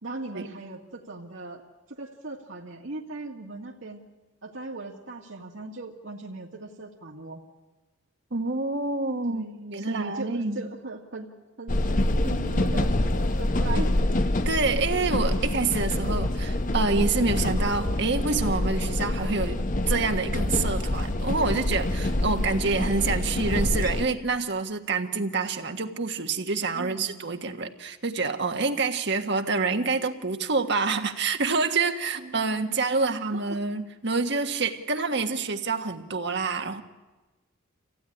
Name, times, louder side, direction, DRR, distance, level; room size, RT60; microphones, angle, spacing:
voice 1, 0.0-1.6 1.9-4.0 4.4-7.4 9.3-11.3 11.6-11.8 12.2-12.9 13.4-13.9 26.7-27.2 32.2-33.6, right 2 dB, 75° right, -3 dB, 2.0 m, -39 dB
voice 2, 8.3-9.4 9.7-10.6 14.4-36.8, right 4 dB, 55° right, 6 dB, 1.5 m, -27 dB
sound 1, 11.7-24.0, left 1 dB, 40° left, 0.9 m, -26 dB
26.5 x 16.5 x 9.9 m, 1.2 s
head